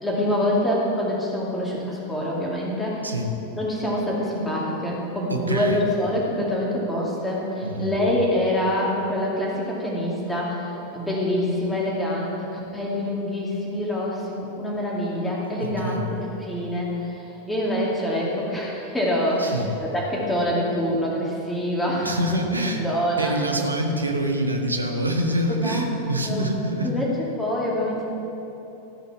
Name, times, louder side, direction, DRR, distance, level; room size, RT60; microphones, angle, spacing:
voice 1, 0.0-3.1 3.5-16.0 16.4-22.1 22.8-23.4 25.5-25.9 26.3-26.4 26.8-28.0, left 1 dB, 5° left, -4 dB, 2.4 m, -25 dB
voice 2, 5.3-5.9 7.6-7.9 15.6-16.1 19.4-19.8 22.0-22.9 23.2-27.3, equal, 80° right, 3 dB, 1.0 m, -26 dB
14.5 x 5.5 x 5.9 m, 3.0 s
figure-of-eight pair, 90°, 0 cm